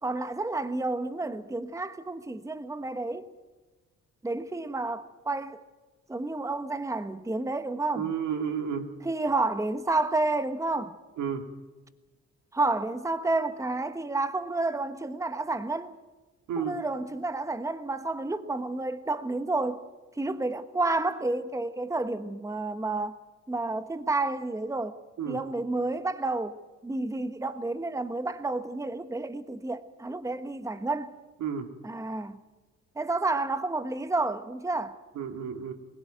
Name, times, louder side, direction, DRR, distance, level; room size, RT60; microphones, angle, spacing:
voice 1, 0.0-3.3 4.2-5.6 6.1-8.1 9.0-10.9 12.5-15.9 16.6-19.8 20.2-23.2 23.5-25.0 25.3-26.6 26.8-31.1 31.8-32.4 33.0-35.0, right 2 dB, 10° right, 1.1 m, -30 dB
voice 2, 7.9-8.9 11.2-11.4 16.5-16.8 25.2-25.4 31.4-31.7 35.1-35.7, right 7 dB, 75° right, 2.9 m, -31 dB
24.0 x 16.5 x 9.1 m
cardioid pair, 90°, 30 cm